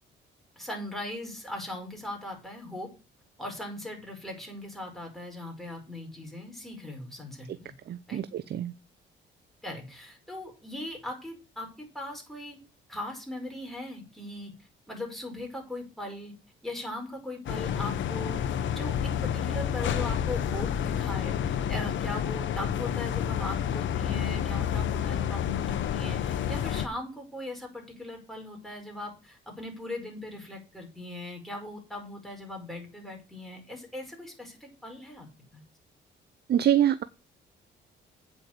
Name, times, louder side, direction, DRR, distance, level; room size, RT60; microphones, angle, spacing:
voice 1, 0.5-2.9 3.4-7.7 8.1-8.2 9.6-12.6 12.9-14.5 14.9-16.3 16.6-35.3 35.5-35.6, left 1 dB, ahead, 1 dB, 5.1 m, -39 dB
voice 2, 7.9-8.7 36.5-37.0, right 10 dB, 55° right, 14 dB, 0.6 m, -25 dB
sound 1, 17.5-26.9, left 9 dB, 70° left, 0.9 m, -29 dB
8.6 x 5.4 x 7.8 m, 0.31 s
cardioid pair, 90°, 20 cm